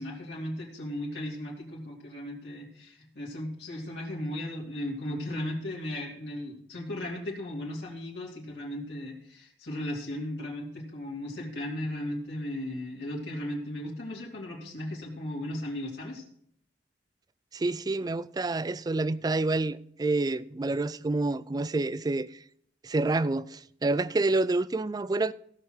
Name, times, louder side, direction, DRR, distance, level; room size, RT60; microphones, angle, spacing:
voice 1, 0.0-16.2, left 1 dB, 70° left, 2.8 m, -36 dB
voice 2, 17.5-22.4 22.8-25.3, right 2 dB, 20° right, 0.3 m, -28 dB
16.5 x 6.4 x 4.4 m
head